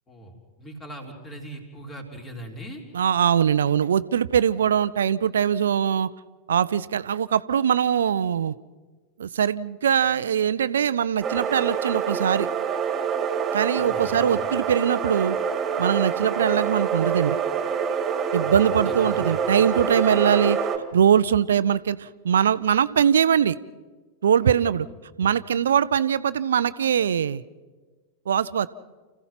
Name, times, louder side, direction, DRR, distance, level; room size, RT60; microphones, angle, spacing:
voice 1, 0.1-2.8 13.7-14.4 18.4-19.4 24.4-24.7, right 1 dB, 20° left, 2 dB, 3.9 m, -40 dB
voice 2, 2.9-6.1 6.5-8.5 9.2-12.5 13.5-15.4 15.8-17.4 18.3-20.6 20.9-23.6 24.2-24.9 25.2-27.4 28.3-28.7, right 8 dB, 65° right, 16 dB, 0.6 m, -22 dB
sound 1, 11.2-20.8, right 6 dB, 25° right, 2.1 m, -26 dB
29.5 x 15.5 x 5.9 m, 1.3 s
figure-of-eight pair, 90°, 0 cm